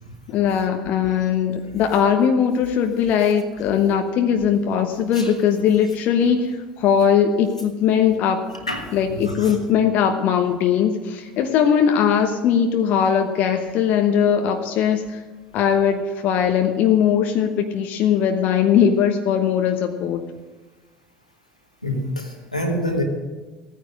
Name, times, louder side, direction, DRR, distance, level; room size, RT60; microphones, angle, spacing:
voice 1, 0.3-8.4 8.9-15.2 15.5-20.2, left 8 dB, 50° left, 6 dB, 1.0 m, -20 dB
voice 2, 9.2-9.6 21.8-23.0, left 1 dB, 90° left, 2 dB, 1.7 m, -26 dB
16.0 x 9.5 x 6.5 m, 1.2 s
figure-of-eight pair, 65°, 4 cm